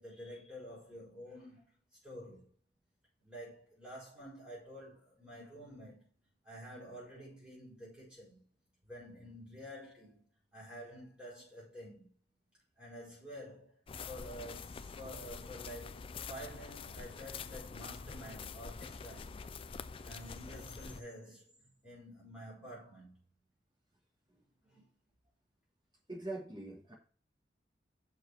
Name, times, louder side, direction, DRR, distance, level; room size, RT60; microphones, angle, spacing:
voice 1, 0.0-1.7 2.0-2.5 3.2-6.1 6.4-8.4 8.9-10.2 10.5-12.1 12.8-13.8 14.0-19.5 20.0-23.1 24.6-24.9, equal, 5° right, 4.7 m, -49 dB
sound 1, 13.9-21.0, left 5 dB, 30° left, 0.3 m, -46 dB
voice 2, 26.1-26.9, right 2 dB, 25° right, 2.6 m, -42 dB
6.5 x 4.9 x 6.2 m
head